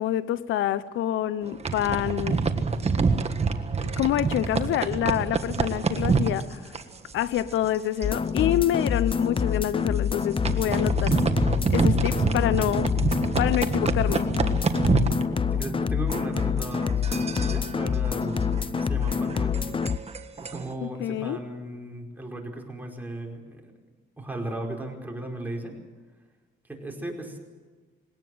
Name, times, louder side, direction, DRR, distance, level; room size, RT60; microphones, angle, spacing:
voice 1, 0.0-2.4 3.8-6.6 7.1-11.2 11.7-12.9 13.4-14.3 20.8-21.4, left 12 dB, 80° left, 0.7 m, -27 dB
sound 1, 1.4-7.8 8.0-8.3 8.6-8.7 9.2-9.4 10.0-15.8 16.1-20.7, right 4 dB, 30° right, 1.6 m, -27 dB
sound 2, 8.0-20.0, left 6 dB, 25° left, 0.6 m, -26 dB
voice 2, 15.5-19.6 20.4-23.7 24.2-25.7 26.7-27.4, right 1 dB, 10° right, 4.8 m, -36 dB
20.5 x 18.0 x 7.8 m
cardioid pair, 90°, 20 cm